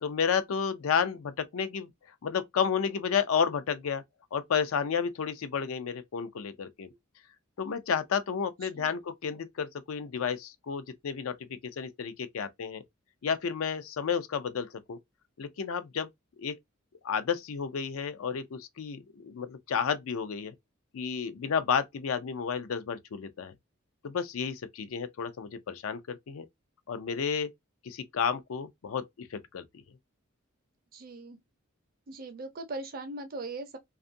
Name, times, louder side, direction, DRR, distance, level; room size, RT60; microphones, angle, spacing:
voice 1, 0.0-1.9 2.2-4.0 4.3-6.9 7.6-12.8 13.2-15.0 15.4-16.1 16.4-16.6 17.0-20.5 20.9-23.5 24.0-26.5 26.9-27.5 27.8-29.8, left 6 dB, 75° left, 0.4 m, -31 dB
voice 2, 30.9-31.4 32.1-33.8, right 2 dB, 45° right, 0.5 m, -40 dB
2.5 x 2.4 x 2.5 m
head